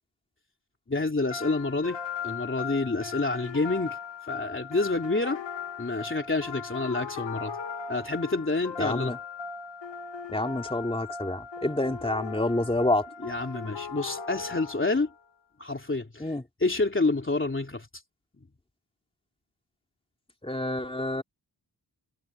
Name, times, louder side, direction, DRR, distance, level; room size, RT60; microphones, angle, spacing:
voice 1, 0.9-4.0 4.3-5.4 5.8-7.6 7.9-9.1 13.2-15.1 15.6-16.3 16.6-17.9, left 3 dB, 30° left, 3.0 m, -28 dB
sound 1, 1.3-15.2, left 6 dB, 85° left, 2.2 m, -38 dB
voice 2, 8.8-9.2 10.3-13.1 16.2-16.4 20.4-21.2, left 1 dB, 15° left, 3.0 m, -28 dB
wide cardioid pair, 120°, 42 cm